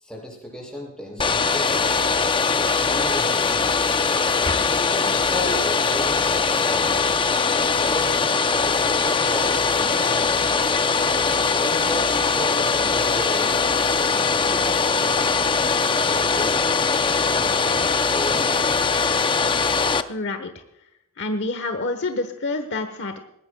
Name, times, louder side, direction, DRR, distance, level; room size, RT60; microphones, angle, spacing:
voice 1, 0.0-2.2 2.7-4.0 4.6-7.2 7.9-10.7 11.6-15.5 16.0-16.6 17.1-17.9 18.1-18.8, left 1 dB, 5° left, -2 dB, 6.3 m, -35 dB
Domestic sounds home sounds, 1.2-20.0, left 4 dB, 25° left, 0.6 m, -21 dB
voice 2, 20.1-20.5 21.2-23.2, left 2 dB, 55° left, 8 dB, 1.1 m, -27 dB
20.5 x 17.5 x 2.3 m, 0.84 s
head